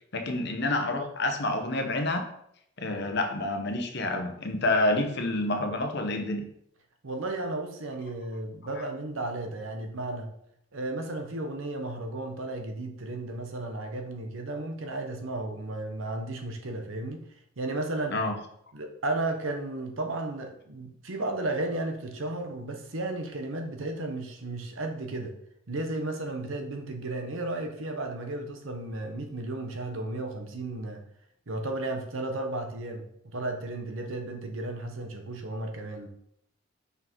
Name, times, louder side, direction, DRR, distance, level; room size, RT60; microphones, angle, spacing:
voice 1, 0.1-2.2 2.8-6.4 8.8-8.9 18.1-18.4, left 2 dB, 55° left, 5 dB, 0.9 m, -28 dB
voice 2, 7.0-10.3 10.7-17.2 17.6-18.2 18.7-25.3 25.7-31.0 31.5-33.1 33.3-36.1, right 2 dB, 75° right, 4 dB, 1.0 m, -34 dB
5.5 x 4.0 x 4.5 m, 0.73 s
head